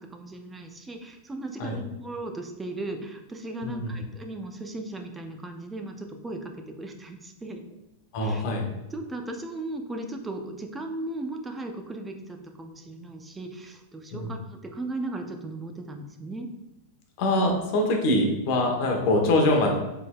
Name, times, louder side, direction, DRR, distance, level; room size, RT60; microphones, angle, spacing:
voice 1, 0.0-7.6 8.2-8.4 8.9-16.5, right 2 dB, 10° right, 4 dB, 0.4 m, -37 dB
voice 2, 3.6-3.9 8.1-8.7 14.1-14.3 17.2-19.7, left 1 dB, 55° left, 2 dB, 0.9 m, -24 dB
4.1 x 3.3 x 2.3 m, 0.95 s
supercardioid pair, 135°, 0 cm